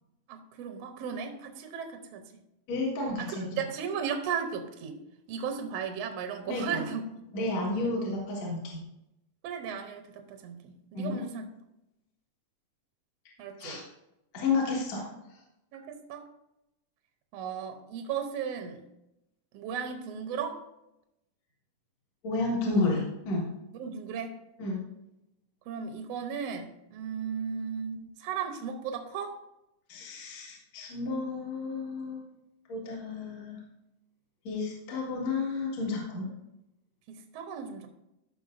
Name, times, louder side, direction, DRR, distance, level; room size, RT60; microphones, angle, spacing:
voice 1, 0.3-2.3 3.2-5.0 5.3-7.0 7.8-7.9 9.4-11.5 13.4-13.8 15.7-16.3 17.3-18.8 19.5-20.6 23.7-24.4 25.7-29.4 37.1-37.9, right 7 dB, 75° right, 5 dB, 1.6 m, -36 dB
voice 2, 2.7-3.6 6.5-6.8 7.3-8.8 10.9-11.2 13.6-13.8 14.3-15.0 22.2-23.5 24.6-24.8 29.9-32.3 32.7-33.6 34.4-36.3, left 3 dB, 55° left, -3 dB, 2.7 m, -31 dB
15.0 x 5.8 x 2.6 m, 0.88 s
omnidirectional pair, 3.8 m